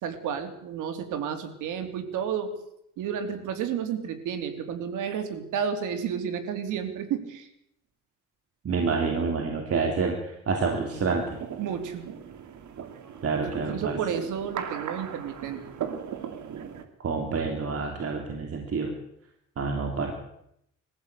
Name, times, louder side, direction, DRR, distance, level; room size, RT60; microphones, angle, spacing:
voice 1, 0.0-2.5 3.0-7.5 11.6-12.0 13.7-15.6, right 7 dB, 90° right, 7 dB, 3.3 m, -31 dB
voice 2, 8.6-11.4 13.2-14.0 17.0-18.9 19.6-20.1, right 4 dB, 50° right, 2 dB, 3.4 m, -28 dB
sound 1, 10.6-16.8, right 8 dB, 70° right, 2.8 m, -39 dB
21.5 x 15.0 x 8.4 m, 0.76 s
cardioid pair, 90°, 30 cm